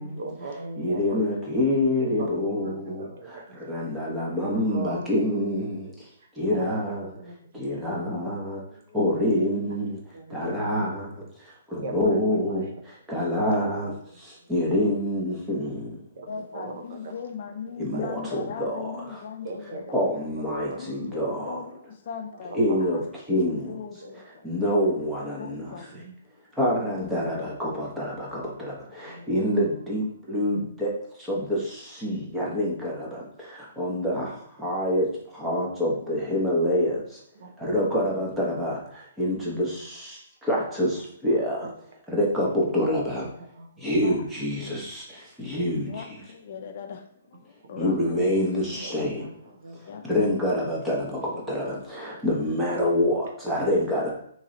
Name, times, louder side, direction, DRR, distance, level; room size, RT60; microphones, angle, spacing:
voice 1, 0.0-1.2 2.0-3.7 4.1-5.0 5.8-6.1 6.5-8.2 8.7-8.8 10.1-10.9 11.8-12.6 13.6-14.2 14.6-14.8 16.2-17.1 17.9-18.1 19.4-19.9 20.4-21.2 22.3-22.8 24.0-24.3 25.4-26.1 29.1-29.3 37.4-37.5 39.5-39.6 41.6-41.7 43.2-43.9 47.6-48.3 48.8-50.0, right 2 dB, 65° right, 3 dB, 0.8 m, -41 dB
voice 2, 0.8-6.1 6.3-7.1 7.5-8.6 8.9-10.0 10.3-13.9 14.2-16.0 17.8-19.2 19.9-21.8 22.5-23.0 23.3-23.8 24.1-26.0 26.6-30.9 31.2-37.2 37.6-41.7 42.1-43.3 43.8-46.2 47.8-49.3 50.0-54.1, left 1 dB, 5° right, -4 dB, 0.9 m, -27 dB
voice 3, 16.3-19.8 20.5-21.7 22.1-22.6 23.4-24.5 25.4-25.9 27.0-27.1 27.4-27.5 44.0-44.2 44.6-44.7 45.9-47.0 47.7-48.3 49.9-50.0, left 6 dB, 45° left, 6 dB, 0.5 m, -38 dB
3.1 x 3.0 x 3.8 m, 0.67 s
hypercardioid pair, 160°, 0 cm